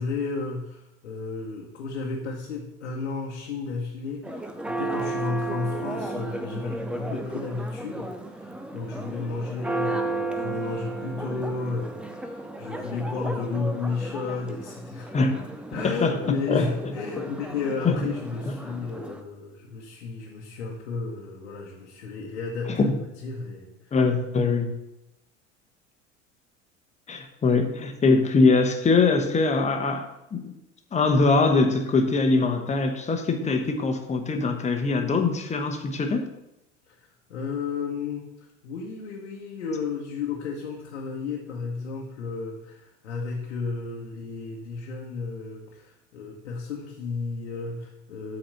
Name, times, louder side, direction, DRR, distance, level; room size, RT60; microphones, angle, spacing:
voice 1, 0.0-15.2 15.7-24.0 36.9-37.0 37.3-48.4, left 4 dB, 65° left, -1 dB, 1.2 m, -33 dB
Church bell, 4.2-19.2, right 2 dB, 5° right, 0.5 m, -34 dB
voice 2, 15.8-16.2 16.5-16.7 17.2-17.3 17.8-18.0 22.7-22.9 23.9-24.7 27.1-30.0 30.3-30.5 30.9-36.2, left 3 dB, 20° left, 5 dB, 1.1 m, -22 dB
7.5 x 4.2 x 6.5 m, 0.88 s
figure-of-eight pair, 75°, 38 cm